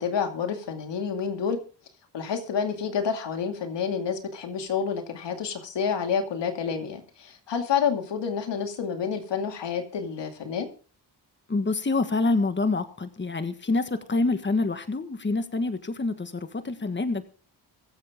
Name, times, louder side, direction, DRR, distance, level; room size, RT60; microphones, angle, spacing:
voice 1, 0.0-1.6 2.1-10.7, left 6 dB, 80° left, 5 dB, 2.5 m, -29 dB
voice 2, 11.5-17.2, left 3 dB, 25° left, 9 dB, 1.6 m, -26 dB
23.0 x 7.7 x 3.7 m, 0.38 s
cardioid pair, 60°, 42 cm